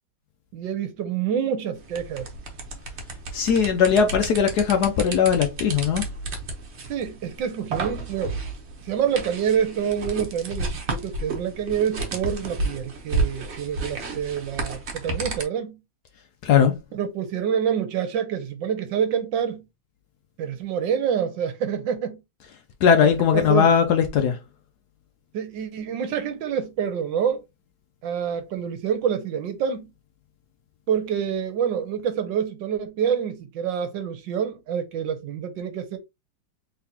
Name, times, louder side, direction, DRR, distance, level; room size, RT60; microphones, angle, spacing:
voice 1, 0.5-2.3 6.9-8.4 8.8-15.8 16.9-19.6 20.4-22.2 23.0-23.7 25.3-27.4 28.0-29.9 30.9-36.0, right 8 dB, 70° right, 1.3 m, -27 dB
sound 1, 1.8-15.4, right 3 dB, 45° right, 0.9 m, -32 dB
voice 2, 3.3-6.1 16.4-16.7 22.8-24.4, left 7 dB, 70° left, 0.9 m, -19 dB
4.0 x 3.4 x 2.8 m
omnidirectional pair, 2.2 m